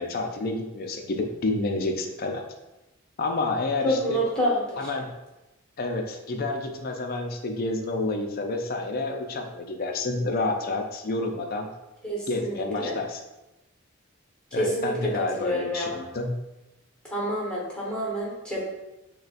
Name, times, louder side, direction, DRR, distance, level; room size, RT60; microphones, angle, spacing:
voice 1, 0.0-2.4 3.2-4.2 4.8-5.1 5.8-11.7 12.3-13.2 14.5-16.3, left 2 dB, 45° left, 3 dB, 0.4 m, -29 dB
voice 2, 3.8-4.9 12.0-12.9 14.5-16.0 17.0-18.6, equal, 5° left, -5 dB, 1.1 m, -28 dB
6.5 x 2.2 x 2.5 m, 0.99 s
head